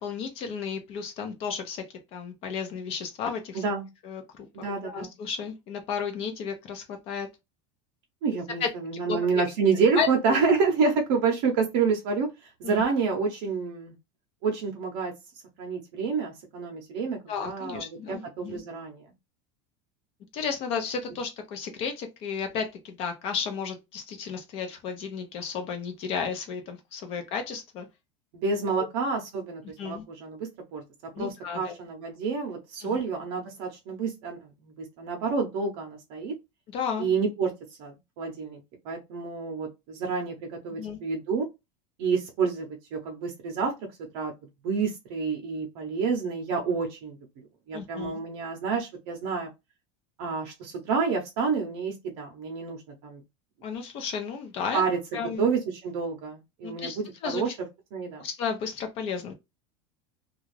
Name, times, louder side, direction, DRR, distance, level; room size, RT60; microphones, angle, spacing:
voice 1, 0.0-1.8 2.1-3.6 4.0-7.3 8.6-8.7 9.1-9.4 9.9-10.4 12.6-12.8 17.3-18.6 20.3-27.9 29.8-30.0 31.1-31.7 32.8-33.0 36.7-37.1 40.7-41.0 47.7-48.2 53.6-54.8 55.1-55.5 56.6-57.5 58.2-59.3, left 6 dB, 40° left, 0.6 m, -33 dB
voice 2, 3.5-3.9 4.5-5.1 8.2-14.0 14.4-15.1 15.6-19.0 28.3-30.8 31.2-36.3 37.0-37.5 37.8-38.6 38.8-41.5 42.0-43.7 44.1-44.3 44.6-47.2 47.7-49.5 50.2-53.2 54.7-55.0 55.4-57.0 57.3-57.5 57.9-58.3, right 5 dB, 55° right, 0.7 m, -28 dB
2.4 x 2.3 x 3.1 m
supercardioid pair, 160°, 16 cm